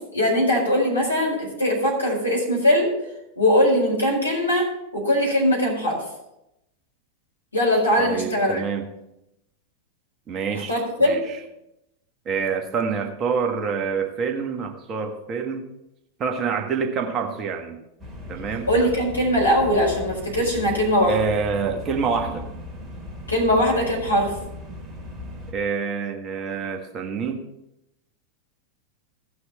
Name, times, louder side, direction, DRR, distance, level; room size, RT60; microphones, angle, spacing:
voice 1, 0.1-2.9 3.4-6.0 7.5-8.6 10.5-11.3 18.7-21.2 23.3-24.3, left 1 dB, 80° left, -3 dB, 4.6 m, -21 dB
voice 2, 8.0-8.9 10.3-11.4 12.2-15.7 16.2-17.8 18.3-18.7 21.1-22.4 25.5-27.4, right 5 dB, 30° right, 4 dB, 1.4 m, -27 dB
sound 1, 18.0-25.5, left 2 dB, 10° right, 2.3 m, -37 dB
16.5 x 6.5 x 4.2 m, 0.86 s
figure-of-eight pair, 90°, 0 cm